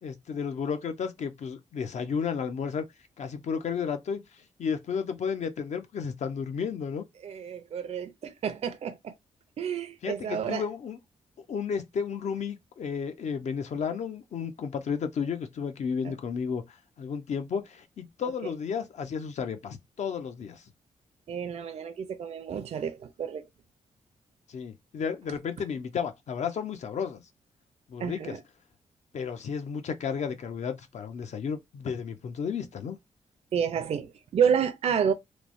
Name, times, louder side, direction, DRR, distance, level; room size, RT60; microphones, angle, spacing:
voice 1, 0.0-2.8 3.2-7.0 10.0-11.0 11.4-20.6 24.5-27.2 27.9-28.4 29.1-33.0, left 6 dB, 65° left, 0.7 m, -33 dB
voice 2, 7.2-9.1 9.6-10.6 13.9-14.0 16.0-16.1 18.4-18.5 21.3-23.5 28.0-28.4 33.5-35.1, right 7 dB, 55° right, 0.4 m, -30 dB
3.1 x 2.0 x 2.5 m
cardioid pair, 90°, 13 cm